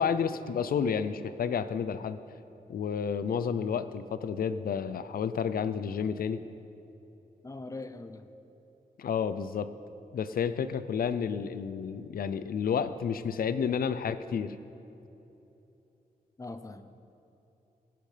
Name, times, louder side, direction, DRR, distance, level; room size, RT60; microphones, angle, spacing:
voice 1, 0.0-2.2 2.7-6.4 9.0-9.7 10.1-14.6, left 7 dB, 70° left, 13 dB, 0.5 m, -30 dB
voice 2, 7.4-8.3 16.4-16.8, left 3 dB, 20° left, 10 dB, 0.6 m, -41 dB
17.5 x 10.0 x 3.3 m, 3.0 s
wide cardioid pair, 120°, 16 cm